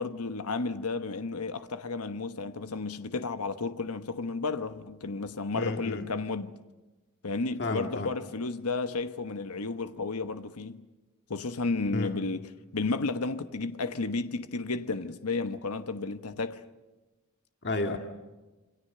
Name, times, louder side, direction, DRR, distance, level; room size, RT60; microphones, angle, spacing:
voice 1, 0.0-6.6 7.2-10.8 11.3-16.6, left 3 dB, 90° left, 1.1 m, -32 dB
voice 2, 5.5-6.0 7.6-8.1 11.9-12.1 17.6-18.0, left 2 dB, 50° left, 2.0 m, -31 dB
28.0 x 25.0 x 6.7 m
head